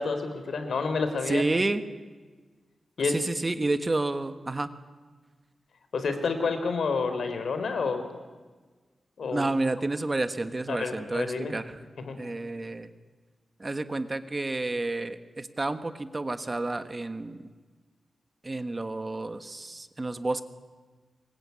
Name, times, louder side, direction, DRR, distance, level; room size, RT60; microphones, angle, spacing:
voice 1, 0.0-1.4 3.0-3.2 5.9-8.0 9.2-9.4 10.7-11.5 12.0-12.2, left 4 dB, 75° left, 8 dB, 4.0 m, -29 dB
voice 2, 1.3-1.8 3.1-4.7 9.3-11.8 12.2-12.9 13.6-17.4 18.4-20.4, right 2 dB, 25° right, 10 dB, 1.4 m, -30 dB
25.5 x 23.0 x 9.6 m, 1.4 s
wide cardioid pair, 140°, 0 cm